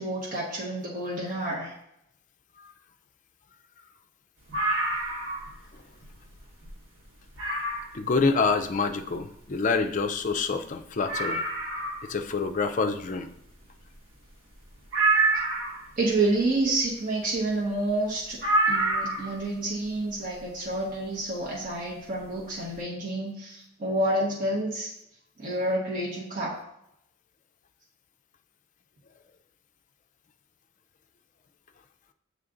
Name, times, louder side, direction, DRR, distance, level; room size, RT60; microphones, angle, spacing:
voice 1, 0.0-1.7 16.0-18.4 18.7-24.9 25.4-26.5, right 2 dB, 40° right, -5 dB, 1.2 m, -29 dB
sound 1, 4.5-5.6 6.0-6.1 6.6-6.7 7.4-8.0 9.7-9.8 10.0-10.1 10.5-10.6 11.0-12.1 14.9-15.9 18.4-19.4 20.7-20.8, right 2 dB, 85° right, 1.5 m, -26 dB
voice 2, 7.9-11.4 12.0-13.3, left 4 dB, 40° left, 6 dB, 0.4 m, -27 dB
7.4 x 3.3 x 3.8 m, 0.80 s
head